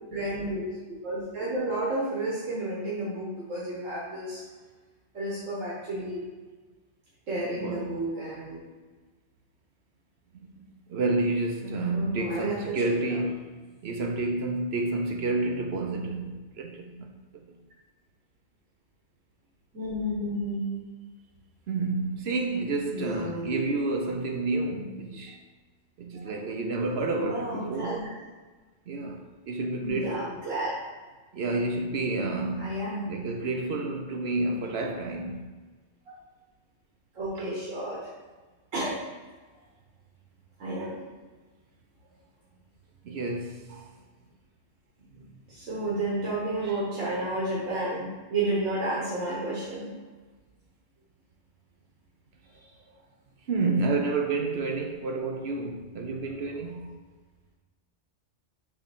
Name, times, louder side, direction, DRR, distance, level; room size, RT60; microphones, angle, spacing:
voice 1, 0.1-0.6 1.0-4.4 5.1-6.2 7.3-8.6 11.6-13.2 19.7-20.8 22.9-23.8 27.1-28.1 29.8-30.7 32.6-33.1 37.2-38.0 38.7-39.0 40.6-41.0 45.2-49.9 52.5-52.6, right 1 dB, 85° right, 1.7 m, -31 dB
voice 2, 7.5-8.0 10.4-13.5 13.8-17.5 21.7-25.4 26.0-28.0 28.9-30.3 31.3-32.7 33.0-35.5 37.4-37.5 43.0-43.9 46.6-46.8 53.5-57.0, right 2 dB, 60° right, 0.9 m, -30 dB
6.7 x 3.1 x 5.9 m
omnidirectional pair, 1.3 m